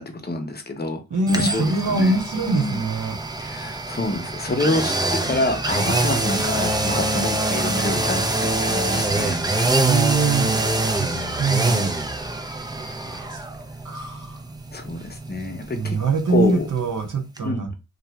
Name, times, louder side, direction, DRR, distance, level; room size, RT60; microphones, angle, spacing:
voice 1, 0.0-1.0 1.3-2.2 2.4-2.8 3.4-9.4 11.1-11.4 14.7-16.0 16.3-16.7 17.4-17.6, left 2 dB, 25° left, 0.8 m, -27 dB
voice 2, 1.1-3.2 9.8-10.6 10.9-11.9 13.0-13.5 13.8-14.4 15.7-17.7, right 3 dB, 55° right, 0.8 m, -23 dB
sound 1, 1.3-17.1 17.4-17.5, right 2 dB, 10° right, 0.5 m, -25 dB
2.5 x 2.2 x 3.0 m
cardioid pair, 50°, 36 cm